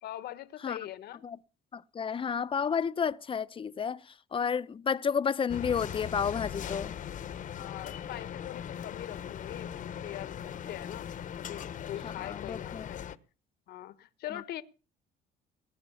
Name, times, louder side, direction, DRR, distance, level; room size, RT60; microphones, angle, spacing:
voice 1, 0.0-1.2 7.5-11.1 11.4-13.1 13.7-14.6, left 13 dB, 70° left, 1.3 m, -42 dB
voice 2, 1.7-4.0 4.3-6.9 12.0-12.9, left 6 dB, 30° left, 0.8 m, -31 dB
sound 1, 5.5-13.2, left 9 dB, 50° left, 1.1 m, -39 dB
19.5 x 9.5 x 7.1 m
cardioid pair, 110°, 17 cm